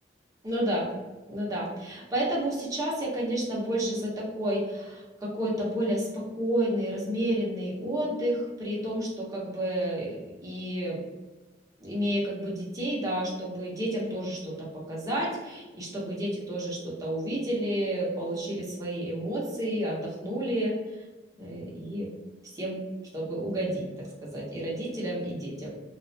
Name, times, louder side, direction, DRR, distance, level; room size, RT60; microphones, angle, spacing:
voice 1, 0.4-0.9 1.3-11.0 11.8-20.8 21.4-22.1 22.4-22.8 23.1-25.7, right 1 dB, 20° right, -5 dB, 0.7 m, -30 dB
2.3 x 2.1 x 2.6 m, 1.2 s
head